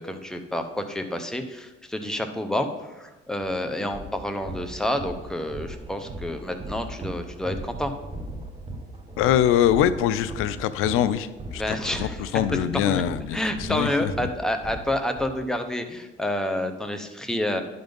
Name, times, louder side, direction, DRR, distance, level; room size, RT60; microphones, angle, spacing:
voice 1, 0.0-7.9 11.5-12.2 12.9-13.0 13.3-17.6, left 1 dB, 5° left, 6 dB, 0.8 m, -29 dB
sound 1, 3.4-3.5 3.9-15.3, right 1 dB, 30° right, 1.2 m, -38 dB
voice 2, 9.2-14.3, left 10 dB, 85° left, 14 dB, 0.5 m, -24 dB
10.5 x 4.0 x 5.2 m, 1.1 s
cardioid pair, 115°, 21 cm